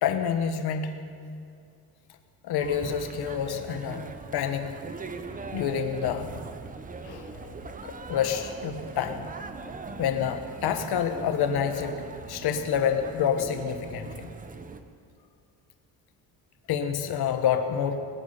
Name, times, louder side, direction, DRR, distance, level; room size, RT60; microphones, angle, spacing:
voice 1, 0.0-0.9 2.4-4.7 5.5-6.4 7.0-7.6 7.8-9.3 10.0-14.3 16.7-18.0, left 8 dB, 80° left, 7 dB, 1.3 m, -28 dB
sound 1, 2.6-14.8, right 4 dB, 20° right, 0.7 m, -41 dB
21.5 x 10.5 x 5.7 m, 2.3 s
cardioid pair, 160°, 38 cm